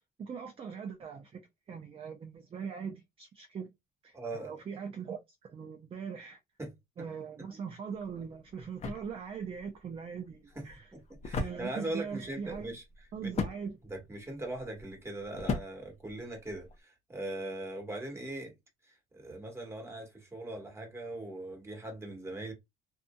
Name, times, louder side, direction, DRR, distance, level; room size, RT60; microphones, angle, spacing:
voice 1, 0.2-3.7 4.0-6.4 7.0-10.9 11.4-12.7 13.1-13.8, right 6 dB, 35° right, 0.5 m, -41 dB
voice 2, 4.1-4.6 6.6-6.7 10.5-10.6 10.9-12.8 13.8-18.5 19.1-22.5, right 2 dB, 15° right, 1.3 m, -40 dB
sound 1, 7.9-16.8, left 4 dB, 40° left, 0.6 m, -40 dB
2.6 x 2.6 x 2.2 m
cardioid pair, 110°, 17 cm